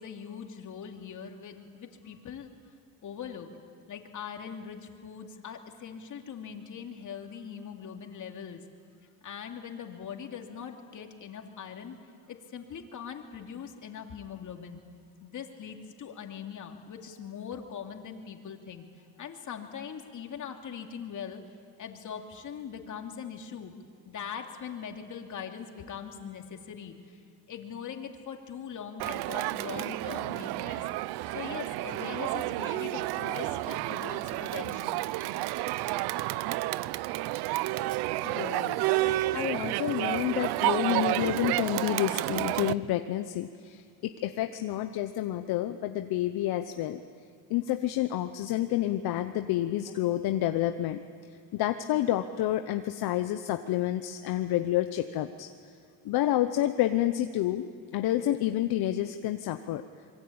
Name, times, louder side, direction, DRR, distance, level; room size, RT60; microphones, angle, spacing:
voice 1, 0.0-2.5 3.0-3.5 3.9-8.6 9.2-12.0 12.3-14.8 15.2-18.9 19.2-21.4 21.8-23.7 24.0-26.9 27.5-30.8 31.3-35.1, left 7 dB, 50° left, 4 dB, 2.8 m, -41 dB
Crowd, 29.0-42.7, right 17 dB, 85° right, 0.7 m, -30 dB
voice 2, 38.2-47.0 47.5-51.0 51.5-55.5 56.0-57.6 57.9-59.8, left 13 dB, 70° left, 8 dB, 1.0 m, -29 dB
26.0 x 23.0 x 8.8 m, 2.2 s
cardioid pair, 110°, 38 cm